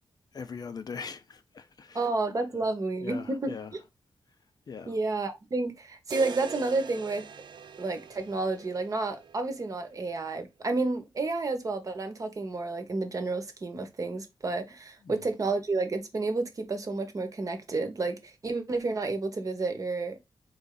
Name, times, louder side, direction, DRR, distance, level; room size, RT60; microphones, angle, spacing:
voice 1, 0.3-2.0 3.0-3.7 4.7-4.9 15.1-15.2, left 5 dB, 50° left, 0.5 m, -40 dB
voice 2, 1.9-3.8 4.9-7.2 7.8-20.2, right 3 dB, 40° right, 1.0 m, -31 dB
sound 1, 6.1-10.2, right 6 dB, 65° right, 0.4 m, -43 dB
4.0 x 3.2 x 3.8 m
wide cardioid pair, 110°, 9 cm